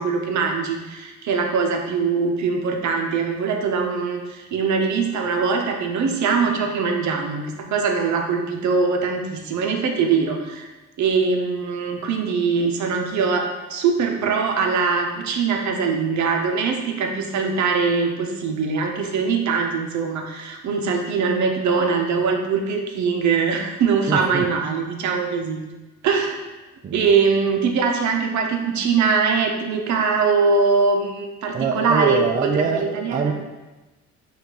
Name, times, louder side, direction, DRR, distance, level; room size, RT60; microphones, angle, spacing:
voice 1, 0.0-10.7 11.0-25.6 26.0-26.4 26.9-33.3, right 5 dB, 70° right, 3 dB, 0.7 m, -22 dB
voice 2, 24.1-24.5 26.8-27.1 31.5-33.3, right 5 dB, 30° right, 4 dB, 0.4 m, -24 dB
5.5 x 2.5 x 3.8 m, 1.1 s
cardioid pair, 90°, 30 cm